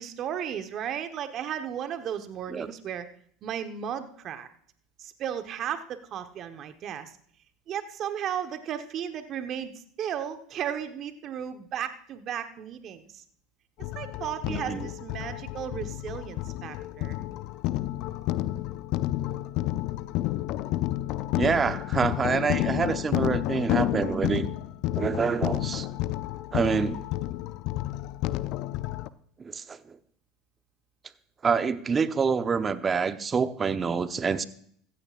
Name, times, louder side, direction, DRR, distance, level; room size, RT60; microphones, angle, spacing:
voice 1, 0.0-3.1 3.4-4.5 5.0-7.2 7.7-9.7 10.0-13.2 13.9-17.2, right 9 dB, 45° right, 8 dB, 1.2 m, -34 dB
sound 1, 13.8-29.1, left 15 dB, 60° left, 0.5 m, -30 dB
voice 2, 14.4-14.9 21.3-24.6 25.0-25.9 26.5-27.0 29.4-30.0 31.4-34.4, right 5 dB, 25° right, 12 dB, 0.8 m, -27 dB
15.5 x 14.5 x 2.5 m, 0.62 s
hypercardioid pair, 95°, 0 cm